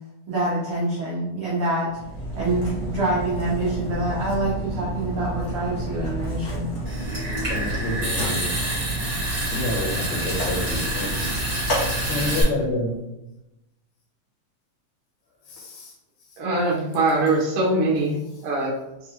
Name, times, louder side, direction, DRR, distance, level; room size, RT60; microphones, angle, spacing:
voice 1, 0.3-1.9 2.3-6.7, right 2 dB, 90° right, -7 dB, 1.1 m, -26 dB
Mechanisms, 1.9-12.6, right 1 dB, 55° left, 1.0 m, -30 dB
Water tap faucet / Sink (filling or washing) / Trickle dribble, 6.9-12.4, right 1 dB, 45° right, 0.7 m, -29 dB
voice 2, 7.5-8.5 9.5-11.3 12.0-12.9 15.5-15.9, left 2 dB, 80° left, 0 dB, 1.8 m, -28 dB
voice 3, 16.4-18.1 18.4-18.7, right 2 dB, 65° right, -4 dB, 1.3 m, -22 dB
4.7 x 2.5 x 2.8 m, 0.92 s
omnidirectional pair, 3.5 m